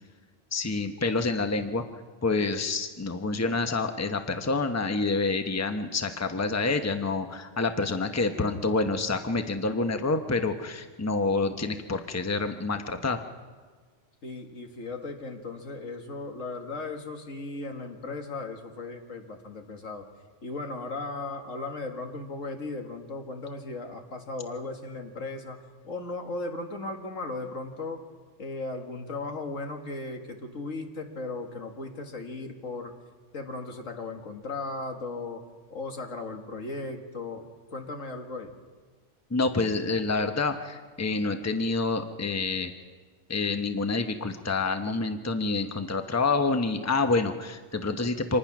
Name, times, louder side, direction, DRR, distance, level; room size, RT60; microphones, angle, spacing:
voice 1, 0.5-1.8 2.2-13.2 39.3-42.7 43.3-48.4, left 3 dB, 15° left, 7 dB, 0.9 m, -27 dB
voice 2, 14.2-20.1 20.4-28.0 28.4-32.9 33.3-35.4 35.7-38.5, left 3 dB, 90° left, 4 dB, 2.2 m, -36 dB
26.0 x 19.5 x 6.1 m, 1.5 s
omnidirectional pair, 1.3 m